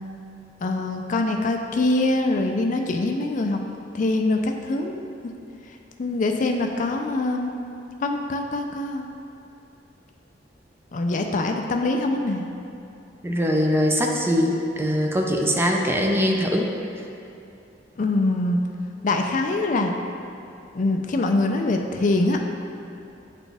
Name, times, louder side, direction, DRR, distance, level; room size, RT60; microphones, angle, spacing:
voice 1, 0.6-3.6 3.9-5.0 6.0-7.5 8.0-9.1 10.9-12.4 18.0-18.6 19.0-19.9 20.7-22.4, left 2 dB, 45° left, 3 dB, 0.4 m, -23 dB
voice 2, 13.2-16.7, equal, 15° right, 0 dB, 0.5 m, -22 dB
8.9 x 4.2 x 3.4 m, 2.7 s
head